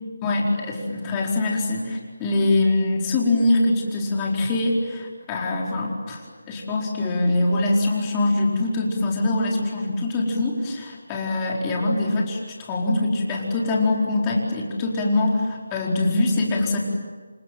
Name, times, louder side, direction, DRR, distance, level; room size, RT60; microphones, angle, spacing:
voice 1, 0.2-6.2 6.5-16.8, left 2 dB, 15° left, -2 dB, 4.5 m, -23 dB
28.5 x 26.5 x 7.6 m, 1.5 s
figure-of-eight pair, 165°, 0 cm